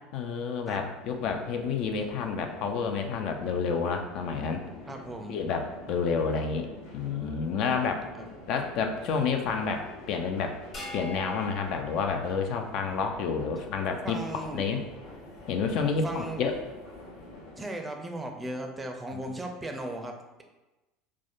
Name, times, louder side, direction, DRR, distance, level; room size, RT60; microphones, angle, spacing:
voice 1, 0.1-4.6 5.3-6.7 6.9-8.0 8.5-10.6 10.9-14.2 14.5-14.8 15.5-16.5 19.1-19.2, left 5 dB, 60° left, 4 dB, 0.3 m, -29 dB
sound 1, 1.0-17.6, left 2 dB, 80° left, 0.8 m, -47 dB
voice 2, 4.9-5.4 8.2-8.3 14.0-14.7 15.8-16.5 17.6-20.4, right 1 dB, 15° right, 3 dB, 0.4 m, -37 dB
sound 2, 10.7-13.3, left 1 dB, 40° left, 1.0 m, -43 dB
3.4 x 2.1 x 2.4 m, 1.1 s
hypercardioid pair, 80°, 0 cm